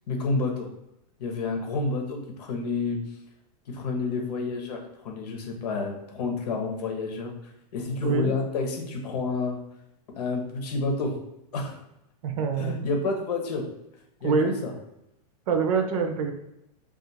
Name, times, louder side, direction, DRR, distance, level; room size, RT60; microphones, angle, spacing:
voice 1, 0.1-0.7 1.2-3.0 3.7-7.3 7.7-9.6 10.1-11.1 11.5-11.8 12.6-13.6 14.2-14.7, left 3 dB, 75° left, 2 dB, 0.9 m, -29 dB
voice 2, 8.0-8.3 12.2-12.8 14.2-14.5 15.5-16.3, right 5 dB, 55° right, 5 dB, 0.6 m, -25 dB
2.5 x 2.4 x 4.1 m, 0.86 s
supercardioid pair, 155°, 21 cm